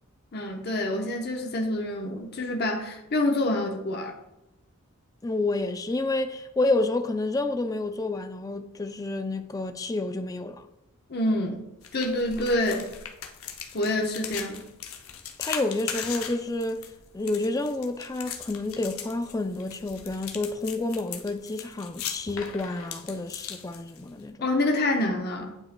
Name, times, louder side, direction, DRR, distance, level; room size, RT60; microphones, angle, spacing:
voice 1, 0.3-4.1 11.1-11.6 11.9-12.9 13.7-14.6 24.4-25.6, left 1 dB, 50° left, 0.9 m, -27 dB
voice 2, 5.2-10.6 15.4-16.9 17.1-24.5, left 2 dB, 15° left, 0.3 m, -29 dB
sound 1, 11.8-24.3, left 8 dB, 75° left, 0.8 m, -39 dB
8.7 x 7.6 x 2.2 m
head